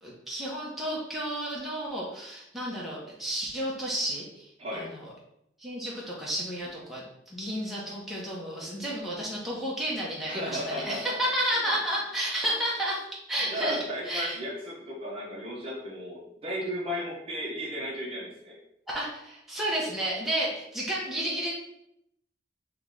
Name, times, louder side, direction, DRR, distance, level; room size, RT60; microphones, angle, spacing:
voice 1, 0.0-4.5 4.7-5.1 5.6-14.4 18.9-21.5, right 1 dB, ahead, -6 dB, 1.0 m, -32 dB
voice 2, 4.6-4.9 10.2-11.2 11.6-11.7 13.4-18.5, equal, 30° right, -3 dB, 0.9 m, -35 dB
3.7 x 3.1 x 3.8 m, 0.78 s
head